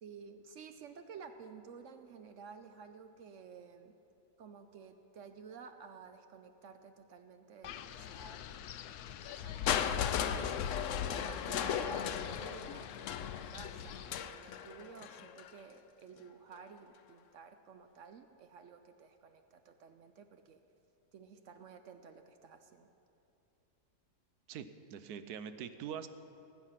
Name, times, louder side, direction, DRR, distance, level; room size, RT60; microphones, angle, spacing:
voice 1, 0.0-3.9 4.4-8.6 8.9-20.6 21.1-22.9, right 6 dB, 65° right, 8 dB, 0.9 m, -53 dB
Wind, 7.6-14.2, left 8 dB, 85° left, 1.1 m, -42 dB
Crushing, 9.7-15.6 16.5-16.6, left 9 dB, 65° left, 0.8 m, -37 dB
voice 2, 24.5-26.1, right 8 dB, 90° right, 11 dB, 1.2 m, -43 dB
19.0 x 8.2 x 5.7 m, 2.9 s
omnidirectional pair, 1.6 m